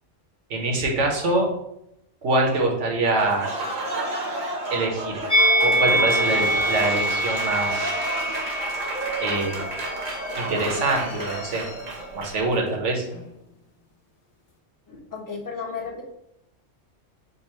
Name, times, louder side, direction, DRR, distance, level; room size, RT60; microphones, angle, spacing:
voice 1, 0.5-1.5 2.2-3.4 4.7-7.9 9.2-9.7 10.4-11.6 12.1-13.1, right 2 dB, 80° right, 0 dB, 1.3 m, -24 dB
Applause, 3.2-12.5, right 2 dB, 45° right, 0.8 m, -31 dB
Musical instrument, 5.3-10.5 10.8-11.0, right 1 dB, 40° left, 1.3 m, -24 dB
sound 1, 6.1-12.5 13.1-13.6, left 3 dB, 70° left, 1.2 m, -39 dB
voice 2, 14.9-16.0, left 5 dB, 20° left, -2 dB, 0.7 m, -34 dB
5.3 x 2.0 x 4.3 m, 0.80 s
omnidirectional pair, 1.2 m